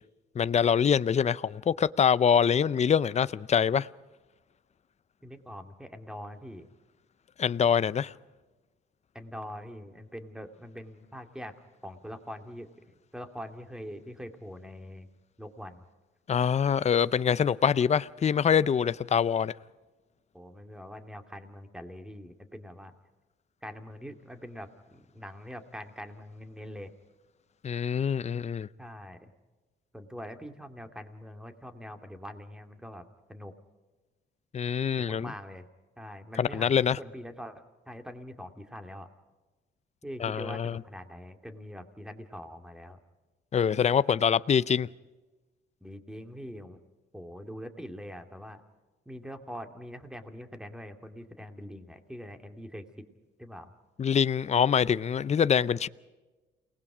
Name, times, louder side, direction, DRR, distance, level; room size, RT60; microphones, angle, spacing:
voice 1, 0.4-3.9 7.4-8.1 16.3-19.5 27.6-28.7 34.5-35.3 36.4-37.0 40.2-40.8 43.5-44.9 54.0-55.9, left 7 dB, 35° left, 0.6 m, -25 dB
voice 2, 5.2-6.7 9.1-11.5 11.8-15.1 15.4-15.8 20.3-22.9 23.6-26.9 28.8-29.3 29.9-33.0 33.3-33.5 35.0-35.7 36.0-39.1 40.0-43.0 45.8-46.8 47.1-48.6 49.1-52.8 53.4-53.7, equal, 5° right, 2.4 m, -43 dB
29.0 x 19.5 x 4.9 m
cardioid pair, 90°, 20 cm